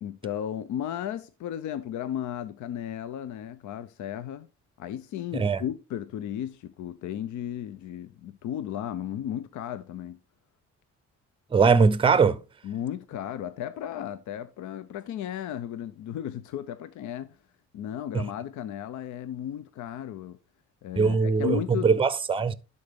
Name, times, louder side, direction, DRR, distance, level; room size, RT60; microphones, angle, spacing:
voice 1, 0.0-4.5 4.8-10.2 12.6-17.4 17.7-20.4 20.8-21.9, left 10 dB, 70° left, 0.6 m, -34 dB
voice 2, 11.5-12.4 18.1-18.2 21.0-22.5, right 5 dB, 15° right, 0.6 m, -21 dB
11.5 x 4.2 x 3.5 m
cardioid pair, 90°, 30 cm